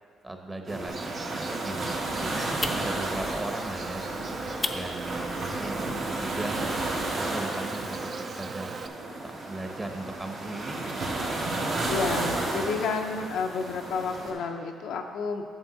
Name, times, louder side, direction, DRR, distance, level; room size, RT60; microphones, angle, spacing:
voice 1, 0.2-4.0 4.7-6.7 7.3-8.0 8.4-11.1, right 2 dB, 20° right, 4 dB, 1.0 m, -38 dB
sound 1, 0.7-14.3, right 2 dB, 65° right, 1.9 m, -32 dB
Insect, 0.9-8.9, right 4 dB, 45° right, 0.5 m, -39 dB
sound 2, 1.9-7.2, left 2 dB, 25° left, 0.6 m, -39 dB
voice 2, 11.9-15.5, left 5 dB, 80° left, 4 dB, 0.7 m, -30 dB
8.9 x 7.0 x 4.0 m, 2.2 s
cardioid pair, 90°, 0 cm